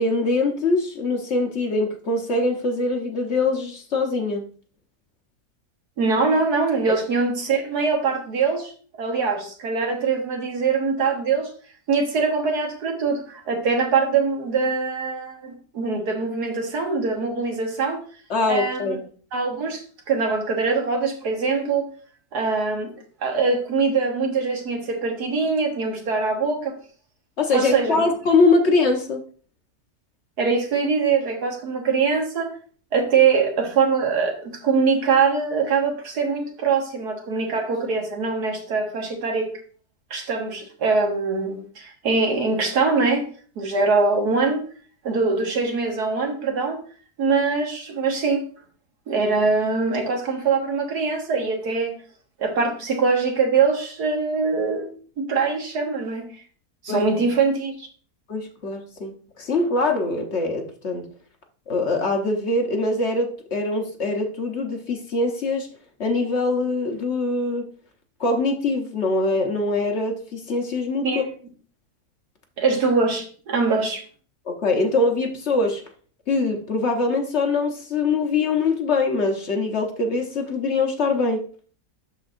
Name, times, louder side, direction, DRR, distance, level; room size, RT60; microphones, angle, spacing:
voice 1, 0.0-4.4 6.9-7.0 18.3-19.0 27.4-29.2 56.9-57.0 58.3-61.0 61.7-65.7 66.0-67.7 68.2-71.2 74.5-75.8 76.3-81.4, left 3 dB, 50° left, 3 dB, 1.1 m, -23 dB
voice 2, 6.0-8.7 9.0-11.5 11.9-18.0 18.5-19.0 19.3-19.8 20.1-21.9 22.3-22.9 23.2-26.8 27.5-28.0 30.4-32.5 32.9-39.5 40.1-43.3 43.6-44.6 45.0-46.8 47.2-48.4 49.1-51.9 52.4-56.3 56.8-57.9 71.0-71.2 72.6-74.0, right 4 dB, 85° right, 2 dB, 1.9 m, -23 dB
12.0 x 4.0 x 2.5 m, 0.43 s
omnidirectional pair, 1.7 m